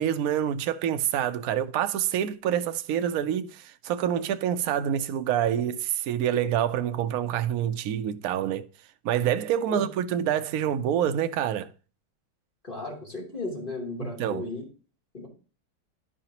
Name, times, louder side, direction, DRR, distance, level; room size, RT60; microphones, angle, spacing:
voice 1, 0.0-8.7 9.0-11.7 14.0-14.5, right 10 dB, 90° right, 0.7 m, -27 dB
voice 2, 12.6-14.6 15.1-15.3, left 2 dB, 25° left, 2.9 m, -35 dB
11.5 x 5.0 x 2.8 m
omnidirectional pair, 2.3 m